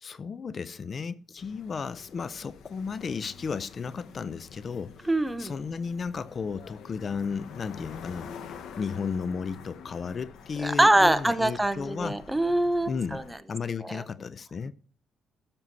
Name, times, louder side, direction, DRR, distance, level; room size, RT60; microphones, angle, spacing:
voice 1, 0.0-8.3 8.8-12.2 12.9-13.2 13.5-14.7, left 5 dB, 45° left, 0.5 m, -34 dB
sound 1, 1.4-13.4, left 6 dB, 80° left, 1.2 m, -47 dB
voice 2, 5.1-5.5 10.6-13.2 13.8-14.0, right 1 dB, 10° right, 0.9 m, -24 dB
12.5 x 6.9 x 4.0 m
cardioid pair, 90°, 0 cm